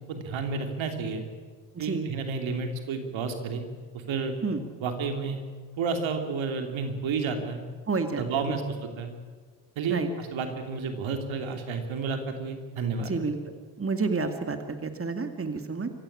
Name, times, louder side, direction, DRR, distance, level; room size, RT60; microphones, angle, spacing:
voice 1, 0.1-1.2 1.8-3.6 3.9-4.3 4.8-5.4 5.8-7.6 8.2-9.1 9.8-13.1, right 4 dB, 70° right, 5 dB, 3.1 m, -31 dB
voice 2, 1.7-2.1 4.4-4.6 7.9-8.6 9.9-10.1 13.0-13.4 13.8-15.9, right 4 dB, 25° right, 7 dB, 2.3 m, -30 dB
24.5 x 15.0 x 8.8 m, 1.5 s
supercardioid pair, 60°, 48 cm